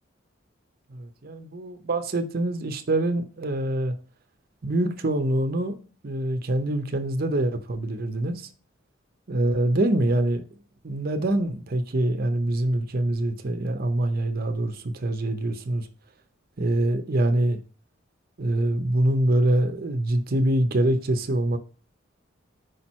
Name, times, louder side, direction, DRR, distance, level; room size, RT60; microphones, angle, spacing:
voice 1, 0.9-3.9 4.6-5.7 6.0-8.5 9.3-10.4 10.8-15.9 16.6-17.6 18.4-21.6, right 1 dB, 50° right, 0.6 m, -25 dB
5.0 x 4.4 x 4.2 m
head